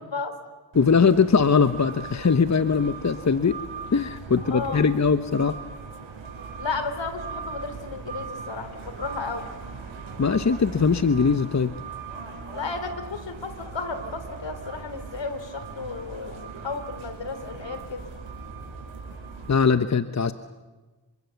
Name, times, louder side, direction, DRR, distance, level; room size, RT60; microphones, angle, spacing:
voice 1, 0.7-3.6 3.9-5.6 10.2-11.7 19.5-20.3, left 5 dB, 35° left, 11 dB, 1.1 m, -21 dB
sound 1, 0.7-19.5, right 5 dB, 75° right, 5.4 m, -39 dB
voice 2, 4.4-4.8 6.6-9.5 12.5-18.0, left 4 dB, 65° left, 10 dB, 3.6 m, -33 dB
27.0 x 24.5 x 7.2 m, 1.2 s
cardioid pair, 50°, 47 cm